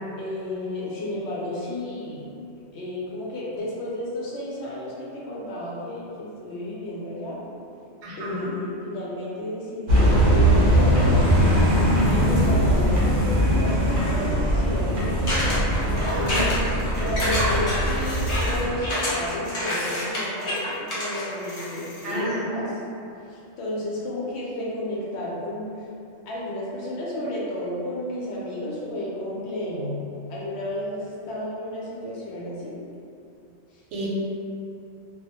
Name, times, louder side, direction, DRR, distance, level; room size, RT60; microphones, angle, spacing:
voice 1, 0.2-2.3 2.7-7.4 8.2-11.2 12.1-15.4 15.8-16.4 17.0-22.6 23.3-25.7 26.3-30.0 30.3-32.7 33.7-33.8, left 1 dB, 75° left, -6 dB, 0.8 m, -32 dB
voice 2, 8.0-8.5 16.1-16.5 22.0-22.4 33.9-34.1, right 1 dB, 85° right, -6 dB, 0.9 m, -30 dB
sound 1, 9.9-18.8, equal, 55° right, 0.7 m, -21 dB
sound 2, 15.3-22.2, left 1 dB, 40° left, 0.5 m, -28 dB
2.2 x 2.0 x 2.7 m, 2.6 s
omnidirectional pair, 1.2 m